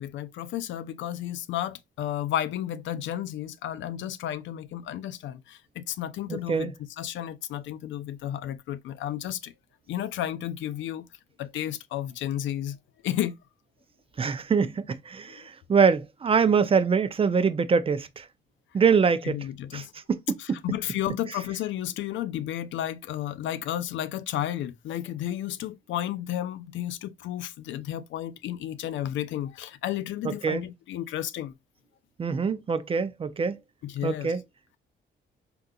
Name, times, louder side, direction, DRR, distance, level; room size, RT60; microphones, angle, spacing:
voice 1, 0.0-9.5 9.9-11.1 11.4-12.8 13.0-13.4 15.3-15.4 19.2-19.9 20.4-31.5 33.8-34.3, left 12 dB, 70° left, 0.4 m, -32 dB
voice 2, 6.3-6.7 14.2-15.4 15.7-18.2 18.7-19.4 19.7-20.6 30.2-30.6 32.2-33.6 34.0-34.4, right 6 dB, 30° right, 0.4 m, -24 dB
3.6 x 2.8 x 2.3 m
cardioid pair, 90°, 20 cm